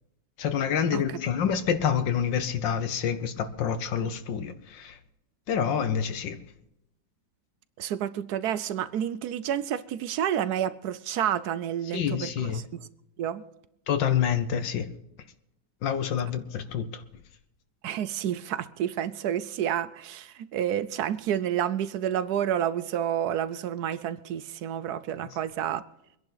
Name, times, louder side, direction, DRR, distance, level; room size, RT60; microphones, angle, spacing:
voice 1, 0.4-5.0 5.5-6.4 11.9-12.6 13.9-14.9 15.8-17.0, left 8 dB, 75° left, 1.6 m, -27 dB
voice 2, 7.8-12.9 13.2-13.4 17.8-25.8, right 10 dB, 70° right, 1.0 m, -30 dB
24.5 x 10.5 x 4.0 m
omnidirectional pair, 2.1 m